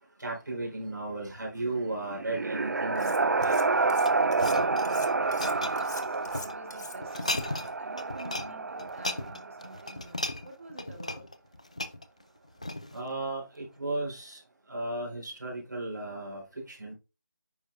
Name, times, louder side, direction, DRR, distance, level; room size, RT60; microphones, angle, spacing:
voice 1, 0.2-3.8 12.9-14.4 14.7-16.9, right 2 dB, 85° right, 3.9 m, -35 dB
sound 1, 1.9-9.8, right 3 dB, 65° right, 0.6 m, -29 dB
Cutlery silverware, 3.0-3.6 3.9-7.7, left 3 dB, 70° left, 1.5 m, -44 dB
sound 2, 3.3-6.5 7.0-7.7 8.0-8.5 8.8-13.1 13.6-13.8, left 1 dB, 20° left, 0.3 m, -36 dB
voice 2, 4.6-5.1 5.4-11.3, right 1 dB, 45° right, 1.9 m, -49 dB
9.7 x 4.5 x 2.5 m
figure-of-eight pair, 175°, 10 cm